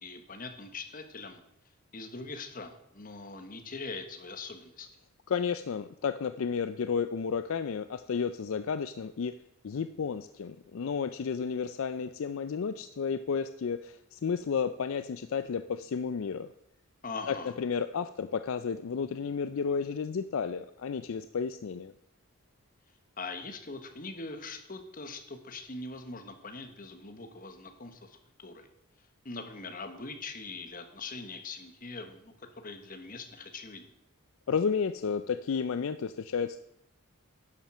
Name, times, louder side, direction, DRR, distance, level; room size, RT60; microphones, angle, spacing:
voice 1, 0.0-1.4 1.9-4.9 17.0-17.5 23.2-28.7 29.2-33.8, left 3 dB, 40° left, 7 dB, 1.2 m, -42 dB
voice 2, 5.3-9.3 9.6-16.5 17.3-21.9 34.5-36.6, left 6 dB, 65° left, 11 dB, 0.4 m, -32 dB
11.0 x 7.3 x 6.1 m, 0.78 s
head